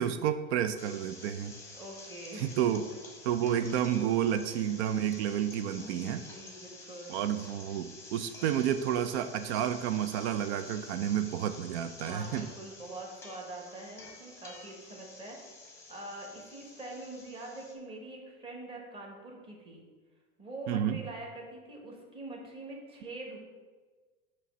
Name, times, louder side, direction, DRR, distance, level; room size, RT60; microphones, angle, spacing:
voice 1, 0.0-1.6 2.3-2.9 3.2-6.2 7.1-12.5 20.7-21.0, right 10 dB, 80° right, 10 dB, 0.5 m, -30 dB
sound 1, 0.8-17.7, left 3 dB, 10° left, 0.8 m, -50 dB
voice 2, 1.7-2.7 3.5-3.6 4.5-4.7 5.7-7.2 12.0-15.4 15.9-19.8 20.4-23.4, right 2 dB, 15° right, -1 dB, 1.1 m, -44 dB
6.8 x 3.2 x 6.0 m, 1.4 s
supercardioid pair, 165°, 33 cm